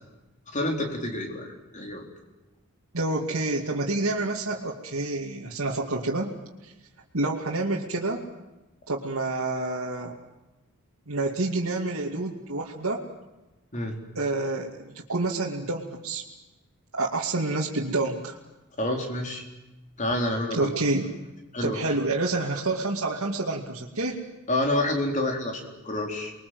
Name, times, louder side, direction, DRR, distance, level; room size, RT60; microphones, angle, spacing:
voice 1, 0.5-2.0 13.7-14.0 18.8-19.4 20.0-20.7 21.5-21.8 24.5-26.3, left 1 dB, 35° left, 2 dB, 4.4 m, -28 dB
voice 2, 2.9-6.3 6.6-6.7 7.1-8.2 8.9-10.2 11.1-13.0 14.1-16.2 16.9-18.4 20.5-21.1 21.6-24.2, right 2 dB, 70° right, -4 dB, 2.6 m, -28 dB
29.0 x 22.0 x 7.9 m, 1.0 s
head